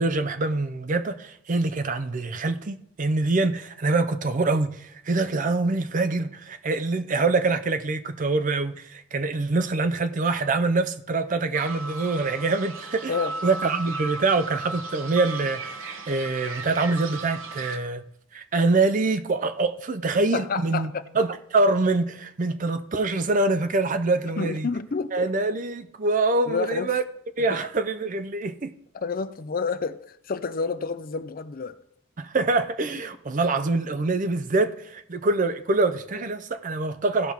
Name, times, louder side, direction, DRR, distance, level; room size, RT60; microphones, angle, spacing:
voice 1, 0.0-13.1 13.4-18.0 18.3-24.7 25.1-27.0 27.4-28.7 32.2-37.3, right 3 dB, 40° right, 0.6 m, -25 dB
sound 1, 11.5-17.8, right 3 dB, 85° right, 1.0 m, -36 dB
voice 2, 20.3-21.0 24.4-25.3 26.5-26.9 27.5-27.7 28.9-31.8, left 5 dB, 45° left, 0.5 m, -29 dB
16.5 x 5.8 x 3.6 m
head